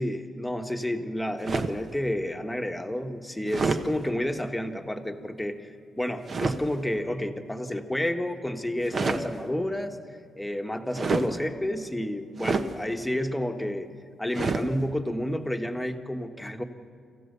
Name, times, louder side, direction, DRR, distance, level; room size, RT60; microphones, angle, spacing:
voice 1, 0.0-10.0 10.3-13.9 14.2-16.6, left 1 dB, 5° left, 5 dB, 1.4 m, -30 dB
sound 1, 1.4-1.9 3.5-3.9 6.3-6.6 8.8-9.3 10.9-11.3 12.4-12.7 14.3-14.7, right 4 dB, 45° right, 1.1 m, -27 dB
26.5 x 15.0 x 6.8 m, 2.3 s
cardioid pair, 105°, 0 cm